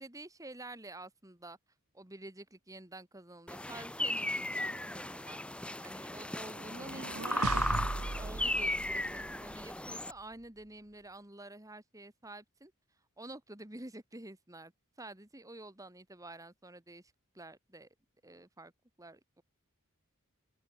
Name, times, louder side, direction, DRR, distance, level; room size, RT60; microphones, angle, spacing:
voice 1, 0.0-1.6 1.9-5.4 5.8-7.6 8.0-12.7 13.2-14.7 15.0-17.9 18.2-18.7 19.0-19.4, right 2 dB, 15° right, 1.9 m, -49 dB
sound 1, 3.5-10.1, left 1 dB, 5° left, 0.9 m, -36 dB
sound 2, 6.6-9.7, right 3 dB, 85° right, 1.1 m, -38 dB
open air
head